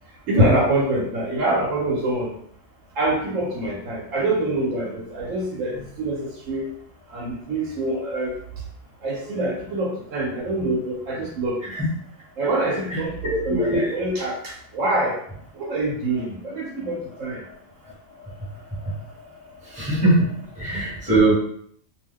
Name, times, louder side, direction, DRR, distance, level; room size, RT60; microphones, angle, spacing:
voice 1, 0.3-2.3 3.0-6.7 7.1-8.4 9.0-11.6 12.4-15.2 15.5-17.4, right 1 dB, 85° right, -4 dB, 1.1 m, -25 dB
voice 2, 13.3-13.9 18.8-18.9 19.6-20.2 20.6-21.3, right 1 dB, 5° right, -7 dB, 1.0 m, -21 dB
2.6 x 2.2 x 3.4 m, 0.65 s
omnidirectional pair, 1.3 m